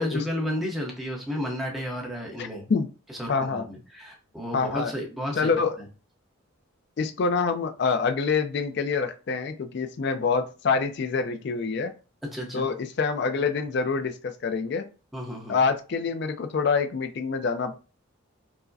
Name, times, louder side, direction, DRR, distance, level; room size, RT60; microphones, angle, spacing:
voice 1, 0.0-2.7 3.1-5.6 12.2-12.7 15.1-15.6, equal, ahead, -1 dB, 0.7 m, -32 dB
voice 2, 2.4-2.9 3.3-3.7 4.5-4.9 5.3-5.8 7.0-11.9 12.5-14.9 15.5-17.7, left 5 dB, 50° left, 8 dB, 0.3 m, -26 dB
4.6 x 2.1 x 2.6 m, 0.34 s
head